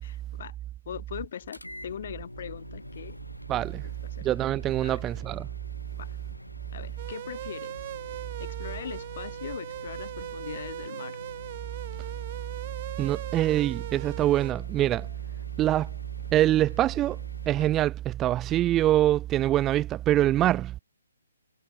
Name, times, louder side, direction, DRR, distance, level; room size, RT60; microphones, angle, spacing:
voice 1, 0.0-0.5 0.9-3.2 3.8-4.3 4.8-5.0 5.9-6.2 6.7-7.8 8.4-11.2, left 9 dB, 45° left, 2.5 m, -40 dB
sound 1, 1.5-17.7, left 1 dB, 85° left, 2.9 m, -45 dB
voice 2, 3.5-3.8 4.2-5.5 13.0-15.1 15.6-15.9 16.3-17.2 17.5-20.7, right 13 dB, 15° right, 0.3 m, -24 dB
sound 2, 7.0-14.5, right 13 dB, 35° right, 1.4 m, -40 dB
figure-of-eight pair, 135°, 0 cm